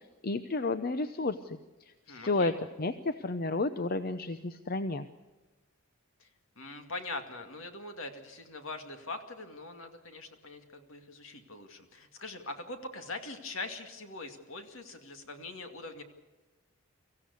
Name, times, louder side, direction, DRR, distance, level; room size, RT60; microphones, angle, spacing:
voice 1, 0.2-1.6 2.1-5.1, left 3 dB, 45° left, 11 dB, 0.7 m, -31 dB
voice 2, 2.1-2.6 6.2-6.3 6.6-16.0, left 2 dB, 65° left, 6 dB, 2.3 m, -42 dB
24.5 x 15.5 x 8.3 m, 1.2 s
head